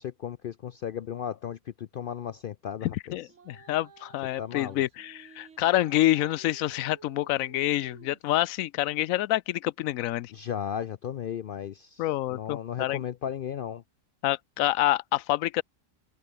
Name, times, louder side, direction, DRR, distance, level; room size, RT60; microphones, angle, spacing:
voice 1, 0.0-2.9 4.4-4.8 10.3-12.0 12.3-13.8, left 9 dB, 65° left, 0.5 m, -35 dB
voice 2, 2.8-10.3 12.0-13.0 14.2-15.6, left 15 dB, 85° left, 1.0 m, -27 dB
sound 1, 3.3-8.3, right 6 dB, 60° right, 1.8 m, -53 dB
omnidirectional pair, 1.4 m